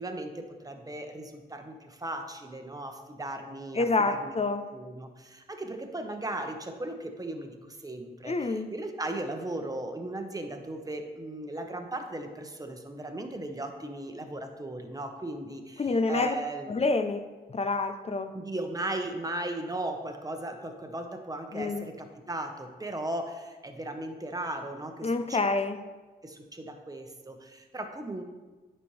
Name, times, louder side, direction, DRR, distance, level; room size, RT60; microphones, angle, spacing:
voice 1, 0.0-4.3 4.7-16.7 18.3-25.4 26.2-28.2, right 1 dB, 20° right, 4 dB, 1.0 m, -37 dB
voice 2, 3.7-4.6 8.2-8.7 15.8-16.3 16.7-17.2 17.5-18.3 21.5-21.9 25.0-25.8, left 3 dB, 30° left, 9 dB, 0.6 m, -27 dB
9.8 x 4.4 x 3.3 m, 1.3 s
supercardioid pair, 50°, 19 cm